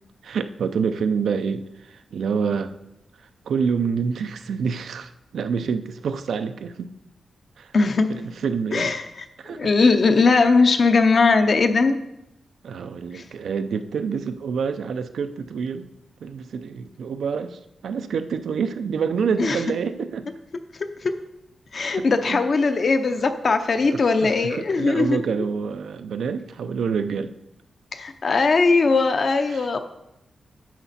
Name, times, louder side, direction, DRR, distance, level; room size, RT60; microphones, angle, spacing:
voice 1, 0.2-2.7 3.4-6.9 7.6-7.7 8.1-8.9 9.4-9.7 12.6-15.9 16.2-20.3 21.8-22.4 23.8-27.3 29.5-29.7, right 6 dB, 75° right, 9 dB, 0.5 m, -27 dB
voice 2, 7.7-8.1 8.7-9.0 9.5-12.0 13.1-13.2 19.4-19.6 21.0-21.1 21.7-25.2 27.9-29.8, left 4 dB, 40° left, 8 dB, 0.7 m, -19 dB
10.5 x 6.9 x 4.2 m, 0.87 s
wide cardioid pair, 175°, 0 cm